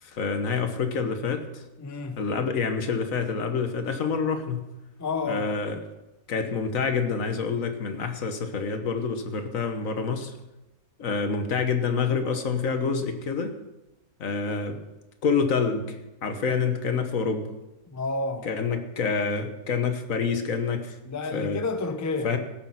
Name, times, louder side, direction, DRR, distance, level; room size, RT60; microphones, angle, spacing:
voice 1, 0.0-1.6 2.2-4.6 5.3-5.7 6.3-10.3 11.0-13.5 14.2-14.8 15.2-16.0 16.2-17.5 18.4-20.9 21.3-21.6 22.2-22.4, left 5 dB, 65° left, 1.5 m, -27 dB
voice 2, 1.8-2.2 5.0-5.5 17.9-18.5 21.0-22.4, left 3 dB, 20° left, 0.5 m, -30 dB
16.5 x 6.9 x 5.7 m
omnidirectional pair, 1.5 m